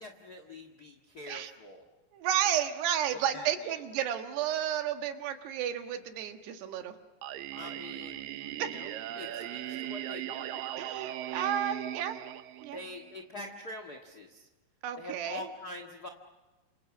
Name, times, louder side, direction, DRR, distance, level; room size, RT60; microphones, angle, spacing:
voice 1, 0.0-1.8 3.1-3.8 7.6-8.2 8.5-10.6 12.7-14.5 15.0-16.1, left 2 dB, 50° left, 4 dB, 1.1 m, -45 dB
voice 2, 2.1-7.0 8.6-8.7 10.8-12.2 12.6-12.8 14.8-15.5, right 10 dB, 85° right, 6 dB, 3.6 m, -32 dB
Singing, 7.2-13.2, right 12 dB, 70° right, 2.4 m, -39 dB
29.5 x 27.5 x 6.2 m, 1.2 s
omnidirectional pair, 4.6 m